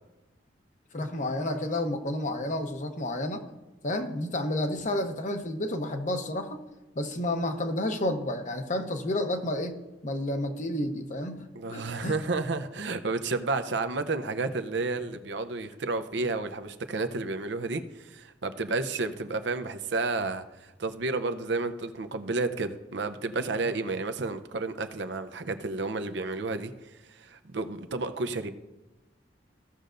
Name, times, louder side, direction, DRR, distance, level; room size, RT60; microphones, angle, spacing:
voice 1, 0.9-3.4 3.8-6.6 7.0-12.2, left 1 dB, 45° left, 6 dB, 0.9 m, -31 dB
voice 2, 11.5-28.5, right 3 dB, 70° right, 9 dB, 0.6 m, -31 dB
16.0 x 6.6 x 2.6 m, 1.1 s
head